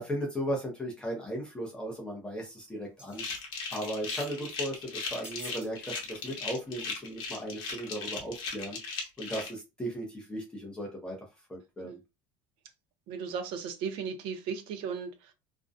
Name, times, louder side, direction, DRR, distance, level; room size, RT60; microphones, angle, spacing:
voice 1, 0.0-3.2 3.7-8.8 9.2-11.2 11.5-12.0, equal, 10° left, 0 dB, 0.5 m, -36 dB
sound 1, 3.0-3.4 3.7-4.4 5.2-5.7 6.0-6.2 6.7-6.8, right 2 dB, 10° right, 0.9 m, -49 dB
sound 2, 3.1-9.5, left 4 dB, 50° left, 0.8 m, -37 dB
voice 2, 13.1-15.3, right 6 dB, 55° right, 7 dB, 0.6 m, -36 dB
2.4 x 2.1 x 2.5 m, 0.26 s
cardioid pair, 160°, 10 cm